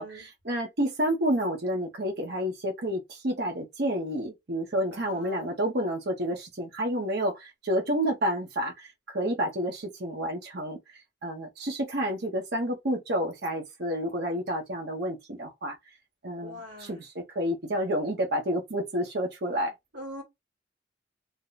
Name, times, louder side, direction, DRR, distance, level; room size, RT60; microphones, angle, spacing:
voice 1, 0.0-10.8 11.2-15.7 16.2-19.7, equal, 60° right, 1.0 m, -30 dB
voice 2, 4.9-5.5 16.4-17.0 19.9-20.2, equal, 80° right, 1.7 m, -43 dB
2.8 x 2.2 x 3.9 m
head